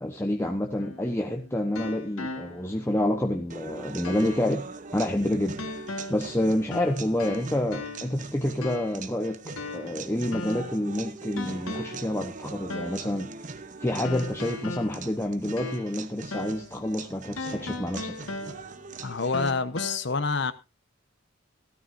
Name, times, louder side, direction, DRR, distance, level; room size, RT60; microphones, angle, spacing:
voice 1, 0.0-4.7 4.9-5.7 6.1-9.4 9.7-18.2, left 1 dB, 10° left, 0.9 m, -28 dB
sound 1, 0.8-2.9 3.3-3.4 4.0-4.6 5.6-6.3 6.7-8.2 8.6-9.1 9.6-10.8 11.4-12.1 12.7-13.1 14.0-16.0 16.3-16.7 17.4-18.9 19.3-20.0, left 3 dB, 80° left, 1.7 m, -37 dB
sound 2, 3.5-19.5, right 4 dB, 35° right, 0.8 m, -42 dB
voice 2, 19.0-20.5, left 4 dB, 55° left, 0.9 m, -27 dB
16.5 x 12.5 x 2.6 m
head